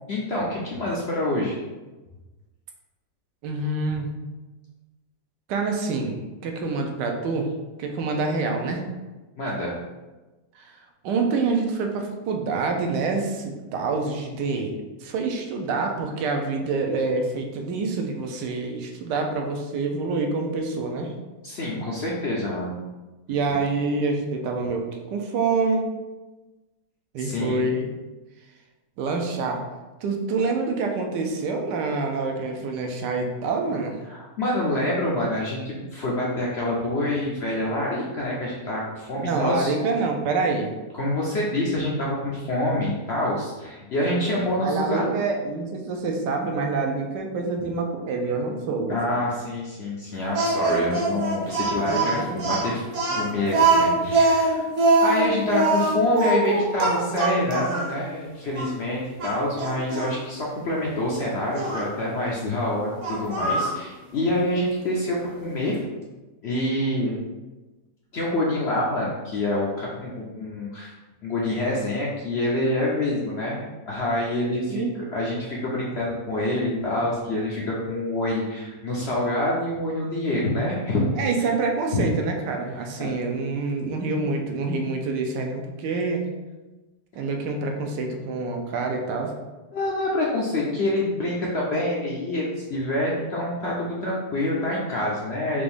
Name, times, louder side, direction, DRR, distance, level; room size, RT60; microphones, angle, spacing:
voice 1, 0.1-1.6 9.4-9.7 21.4-22.8 23.5-23.6 27.2-27.7 34.1-39.7 40.9-45.1 48.9-54.7 55.0-65.8 66.4-67.1 68.1-70.9 71.2-81.1 81.9-82.0 83.0-83.1 89.7-95.6, left 1 dB, 70° left, -4 dB, 0.6 m, -26 dB
voice 2, 3.4-4.1 5.5-7.5 7.8-8.8 10.6-10.7 11.0-21.1 23.3-24.8 25.1-25.9 27.1-27.9 29.0-29.6 30.0-34.0 39.2-40.7 44.3-49.2 51.9-52.6 53.1-53.9 74.7-74.9 81.2-86.2 87.2-89.3, right 3 dB, 80° right, 3 dB, 1.3 m, -27 dB
Speech, 50.3-57.9 58.5-58.7 59.2-60.1 61.5-61.9 63.0-63.8, right 3 dB, 55° right, 1.1 m, -22 dB
5.0 x 2.6 x 3.4 m, 1.2 s
omnidirectional pair, 1.9 m